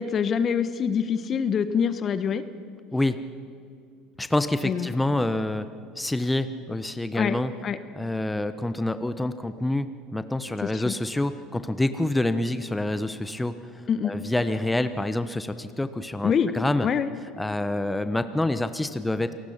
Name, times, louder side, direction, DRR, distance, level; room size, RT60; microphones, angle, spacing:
voice 1, 0.0-2.4 4.6-4.9 7.1-7.4 7.6-7.8 10.6-10.9 13.9-14.2 16.2-16.5 16.8-17.1, left 7 dB, 40° left, 13 dB, 1.2 m, -25 dB
voice 2, 4.2-5.7 6.0-7.5 7.9-13.5 14.0-16.9 17.4-19.3, left 1 dB, 10° left, 11 dB, 1.1 m, -27 dB
28.0 x 19.5 x 5.9 m, 2.4 s
hypercardioid pair, 70°, 0 cm